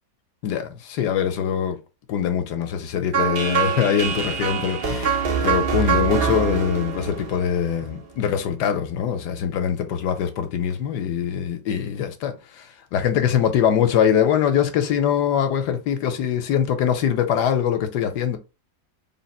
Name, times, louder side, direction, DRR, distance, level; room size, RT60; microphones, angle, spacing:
voice 1, 0.4-1.8 2.1-18.4, left 8 dB, 75° left, 1.2 m, -23 dB
sound 1, 3.1-8.1, right 6 dB, 70° right, 0.5 m, -24 dB
3.7 x 2.5 x 4.1 m
omnidirectional pair, 1.8 m